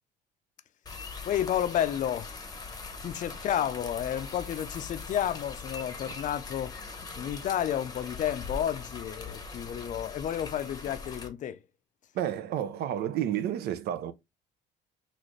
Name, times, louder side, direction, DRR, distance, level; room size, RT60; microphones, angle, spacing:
sound 1, 0.9-11.3, left 4 dB, 20° left, 0.8 m, -41 dB
voice 1, 1.3-2.5 3.0-6.7 7.1-11.6, left 10 dB, 50° left, 0.4 m, -31 dB
voice 2, 12.1-14.1, right 10 dB, 70° right, 0.5 m, -30 dB
4.0 x 2.5 x 3.1 m
cardioid pair, 110°, 17 cm